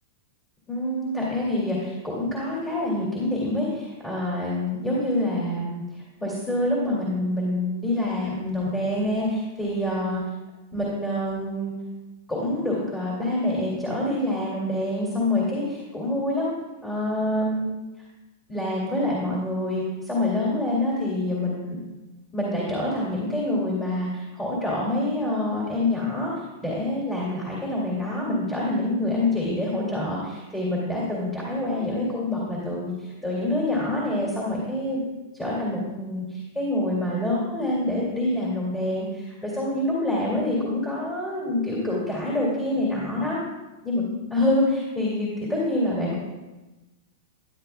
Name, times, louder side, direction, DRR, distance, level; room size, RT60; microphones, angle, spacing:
voice 1, 0.7-10.2 10.7-11.7 12.3-16.5 16.8-17.7 18.5-21.8 22.3-26.3 26.6-35.1 35.4-43.4 43.8-44.0 44.3-46.2, left 1 dB, 15° left, -6 dB, 2.4 m, -26 dB
12.5 x 10.0 x 2.3 m, 1.1 s
supercardioid pair, 140°, 0 cm